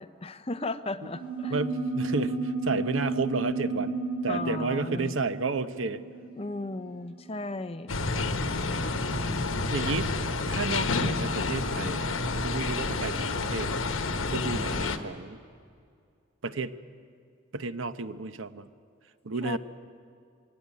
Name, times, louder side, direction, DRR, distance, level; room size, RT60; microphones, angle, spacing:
voice 1, 0.0-1.5 4.3-5.1 6.4-8.0 19.4-19.6, left 2 dB, 30° left, 11 dB, 0.7 m, -35 dB
sound 1, 1.1-7.0, right 3 dB, 25° right, 5.3 m, -33 dB
voice 2, 1.5-3.9 4.2-6.0 9.7-10.1 10.5-12.1 12.4-13.8 14.3-15.4 16.4-16.7 17.5-18.7 19.2-19.6, right 3 dB, 80° right, 12 dB, 0.9 m, -31 dB
sound 2, 7.9-15.0, left 3 dB, 80° left, 1.2 m, -29 dB
22.0 x 17.0 x 9.4 m, 2.3 s
head